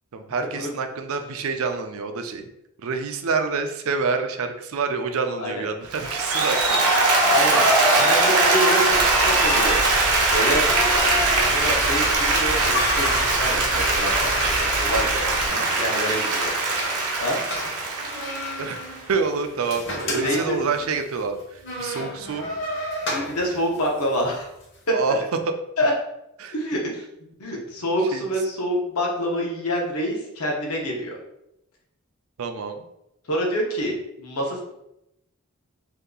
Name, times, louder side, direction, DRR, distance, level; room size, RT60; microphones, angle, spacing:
voice 1, 0.1-2.5 2.8-7.2 18.6-18.8 19.1-22.5 24.9-25.2 26.4-26.5 28.1-28.3 32.4-32.8, right 4 dB, 70° right, 6 dB, 0.4 m, -27 dB
Applause, 5.9-19.1, right 2 dB, 90° right, 0.8 m, -21 dB
voice 2, 7.3-10.7 10.9-11.0 11.4-16.5 17.2-17.4 20.0-20.6 23.1-24.5 24.9-25.0 25.8-25.9 26.5-27.0 27.4-31.2 33.3-34.6, equal, 85° left, -1 dB, 0.8 m, -27 dB
sound 1, 7.6-24.8, left 1 dB, 55° left, 0.9 m, -34 dB
sound 2, 8.9-15.5, left 1 dB, 25° left, 0.3 m, -34 dB
2.8 x 2.3 x 3.6 m, 0.85 s
head